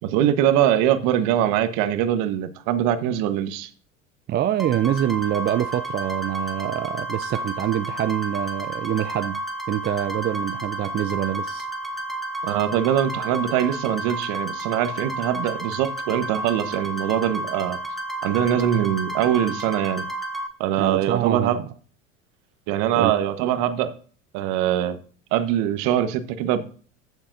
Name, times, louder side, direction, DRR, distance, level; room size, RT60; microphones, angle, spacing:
voice 1, 0.0-3.7 12.4-17.8 18.2-20.0 20.6-21.6 22.7-23.9 24.3-25.0 25.3-26.6, right 11 dB, 55° right, 1.3 m, -22 dB
voice 2, 4.3-9.4 9.7-11.7 20.8-21.7 23.0-23.1, right 11 dB, 25° right, 0.5 m, -25 dB
sound 1, 4.6-20.5, right 1 dB, ahead, 1.8 m, -31 dB
15.5 x 7.2 x 2.6 m
hypercardioid pair, 80°, 38 cm